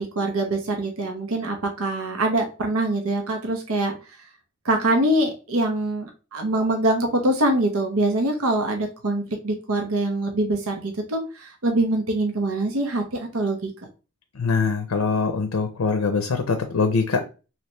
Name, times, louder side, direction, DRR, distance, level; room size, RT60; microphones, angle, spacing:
voice 1, 0.0-3.9 4.6-13.7, right 1 dB, 80° right, 3 dB, 0.7 m, -24 dB
voice 2, 14.3-17.2, left 4 dB, 85° left, 6 dB, 0.5 m, -23 dB
3.2 x 2.8 x 2.9 m, 0.32 s
head